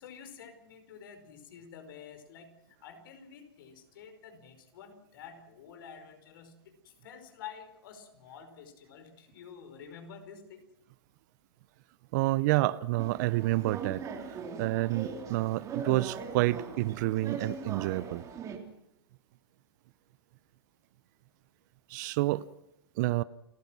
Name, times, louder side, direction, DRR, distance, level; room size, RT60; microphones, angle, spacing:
voice 1, 0.0-10.6, left 7 dB, 60° left, 5.1 m, -49 dB
voice 2, 12.1-18.2 21.9-22.4 23.0-23.2, right 18 dB, 45° right, 0.7 m, -29 dB
sound 1, 13.0-18.6, right 5 dB, 25° right, 3.2 m, -40 dB
29.5 x 15.0 x 6.1 m
hypercardioid pair, 130°, 13 cm